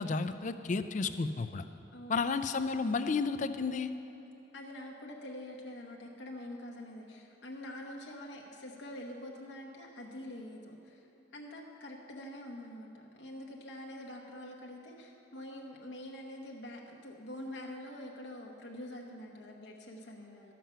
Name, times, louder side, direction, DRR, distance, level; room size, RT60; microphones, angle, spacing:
voice 1, 0.0-1.6 2.1-3.9, left 4 dB, 45° left, 10 dB, 0.4 m, -32 dB
voice 2, 1.9-2.3 4.5-11.1 11.3-20.5, left 1 dB, 70° left, -1 dB, 1.0 m, -45 dB
12.5 x 7.5 x 5.7 m, 2.8 s
head